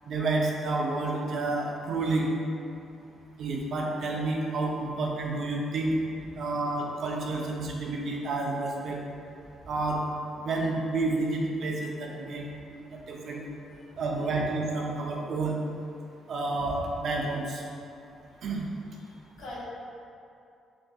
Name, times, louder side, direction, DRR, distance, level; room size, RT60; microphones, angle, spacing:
voice 1, 0.1-2.3 3.4-5.9 6.4-9.0 9.7-10.0 10.4-12.4 12.7-13.4 14.0-15.5 16.3-17.6 18.4-18.6, right 2 dB, 60° right, -1 dB, 0.6 m, -30 dB
voice 2, 18.9-19.6, left 2 dB, 80° left, -7 dB, 1.1 m, -44 dB
5.4 x 2.7 x 2.3 m, 2.6 s
cardioid pair, 90°, 0 cm